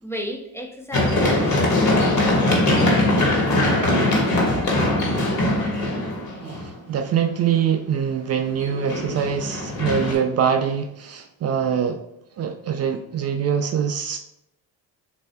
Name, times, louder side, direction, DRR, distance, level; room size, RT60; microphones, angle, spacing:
voice 1, 0.0-2.5, equal, 5° left, 0.5 m, -33 dB
Run, 0.9-6.8 8.6-10.1, left 1 dB, 55° left, 1.5 m, -21 dB
voice 2, 6.4-12.0 12.4-14.2, right 8 dB, 45° right, 0.4 m, -24 dB
6.7 x 2.7 x 2.2 m
cardioid pair, 85°, 35 cm